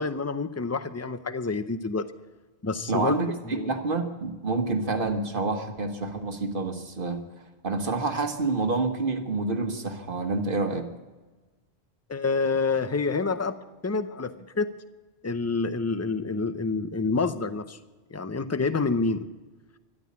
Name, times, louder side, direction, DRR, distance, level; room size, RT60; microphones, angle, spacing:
voice 1, 0.0-2.1 2.6-3.1 3.4-3.7 12.1-14.7 15.2-17.8 18.1-19.3, left 4 dB, 20° left, 12 dB, 0.5 m, -28 dB
voice 2, 2.9-7.2 7.6-10.9, right 3 dB, 55° right, 6 dB, 1.5 m, -28 dB
13.5 x 12.0 x 8.6 m, 1.3 s
omnidirectional pair, 1.1 m